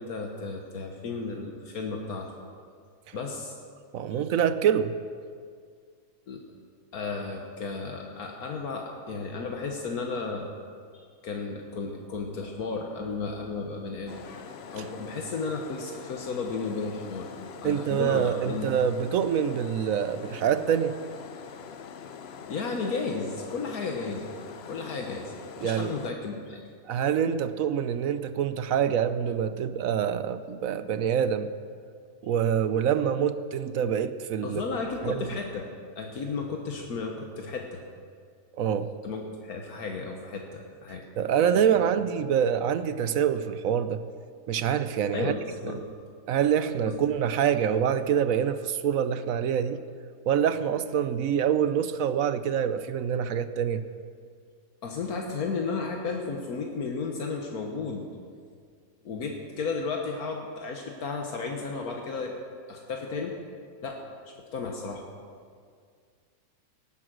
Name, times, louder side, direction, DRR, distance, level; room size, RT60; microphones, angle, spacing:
voice 1, 0.0-2.3 3.1-3.5 4.1-4.2 6.3-6.4 6.9-10.5 10.9-17.3 17.6-18.7 22.5-24.3 24.6-25.3 25.6-26.6 34.4-35.7 36.0-37.8 39.0-41.1 41.5-41.6 45.1-45.9 46.9-47.0 54.8-58.0 59.0-62.4 62.7-63.3 63.8-64.0 64.5-65.0, left 4 dB, 80° left, 1 dB, 1.6 m, -33 dB
voice 2, 3.9-4.9 17.6-20.9 25.6-26.0 26.9-31.5 32.2-34.6 35.0-35.3 38.6-38.9 41.2-44.0 44.5-45.3 46.3-49.8 50.3-53.8, right 8 dB, 70° right, 12 dB, 1.0 m, -26 dB
sound 1, 14.1-26.1, left 7 dB, 55° left, 0.8 m, -44 dB
18.0 x 9.9 x 6.2 m, 2.1 s
omnidirectional pair, 1.5 m